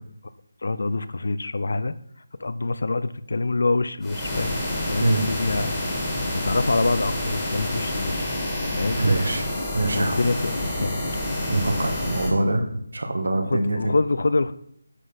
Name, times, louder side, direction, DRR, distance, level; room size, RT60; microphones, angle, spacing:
voice 1, 0.6-1.9 2.4-5.7 6.3-8.4 8.7-9.0 9.9-11.1 13.4-14.5, left 3 dB, 60° left, 15 dB, 0.5 m, -26 dB
sound 1, 4.0-12.3, left 1 dB, 10° left, 1.9 m, -28 dB
voice 2, 9.0-9.4 9.7-10.1 11.5-12.7 12.9-13.8, right 2 dB, 80° right, 5 dB, 1.9 m, -23 dB
9.9 x 6.3 x 4.0 m, 0.69 s
figure-of-eight pair, 175°, 0 cm